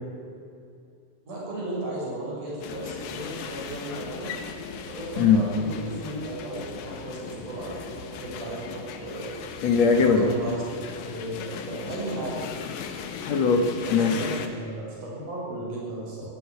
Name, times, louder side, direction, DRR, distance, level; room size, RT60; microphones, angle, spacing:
voice 1, 1.3-4.3 4.9-9.4 10.1-10.6 11.1-12.4 13.8-16.2, right 1 dB, 60° right, -4 dB, 8.1 m, -35 dB
sound 1, 2.6-14.5, left 6 dB, 80° left, 3.2 m, -38 dB
voice 2, 5.2-5.5 9.6-10.3 13.2-14.3, left 5 dB, 55° left, 5 dB, 2.4 m, -21 dB
18.0 x 15.5 x 9.7 m, 2.5 s
omnidirectional pair, 4.0 m